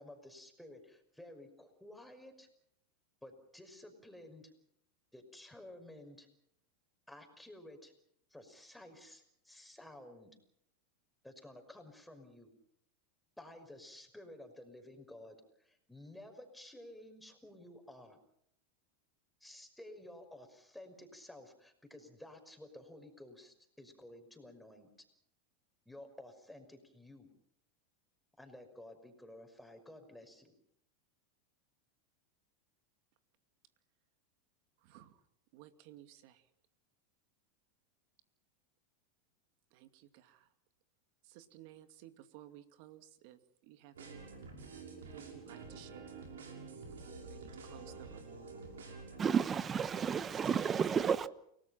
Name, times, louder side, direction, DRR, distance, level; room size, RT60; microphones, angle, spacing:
voice 1, 0.0-2.5 3.2-4.5 5.1-6.3 7.1-7.9 8.3-10.4 11.2-12.5 13.4-18.2 19.4-24.9 25.9-27.3 28.4-30.5, left 1 dB, 5° left, 5.8 m, -53 dB
voice 2, 34.8-35.2 35.5-36.4 39.7-40.5 41.2-44.3 45.1-46.2 46.5-48.3 50.3-50.8, right 13 dB, 60° right, 2.4 m, -56 dB
sound 1, 43.9-49.2, right 4 dB, 85° right, 6.0 m, -49 dB
voice 3, 49.2-51.3, right 7 dB, 25° right, 1.1 m, -31 dB
29.5 x 19.0 x 5.9 m
hypercardioid pair, 105°, 0 cm